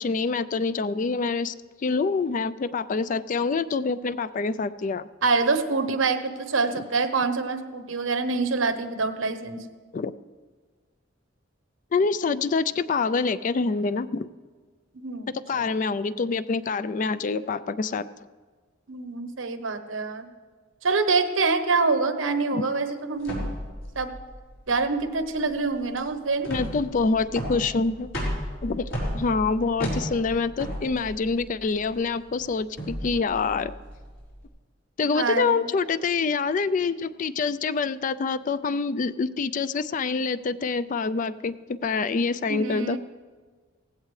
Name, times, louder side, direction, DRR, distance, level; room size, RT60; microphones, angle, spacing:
voice 1, 0.0-1.5 1.8-5.1 9.9-10.1 11.9-14.3 15.3-18.1 22.5-22.7 26.5-28.1 28.6-33.7 35.0-43.0, left 4 dB, 40° left, 14 dB, 0.4 m, -26 dB
voice 2, 5.2-9.6 14.9-15.6 18.9-20.3 20.8-23.3 23.9-24.1 24.7-26.5 35.1-35.6 42.5-43.0, right 4 dB, 85° right, 9 dB, 1.0 m, -26 dB
sound 1, 23.2-34.4, equal, 75° left, 4.8 m, -34 dB
17.5 x 15.5 x 3.2 m, 1.5 s
head